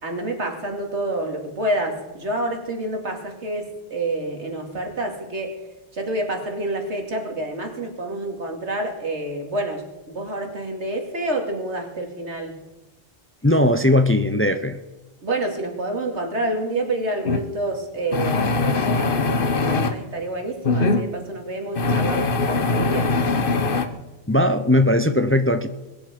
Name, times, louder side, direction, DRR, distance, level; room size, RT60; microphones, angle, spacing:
voice 1, 0.0-5.6 5.9-12.6 15.2-23.1, right 1 dB, 90° right, 3 dB, 2.8 m, -28 dB
voice 2, 13.4-14.8 24.3-25.7, left 1 dB, 15° left, 9 dB, 0.7 m, -18 dB
sound 1, 17.2-17.4 18.1-19.9 20.6-21.0 21.8-23.9, left 3 dB, 55° left, 1.2 m, -21 dB
22.0 x 10.0 x 5.2 m, 1.2 s
omnidirectional pair, 1.1 m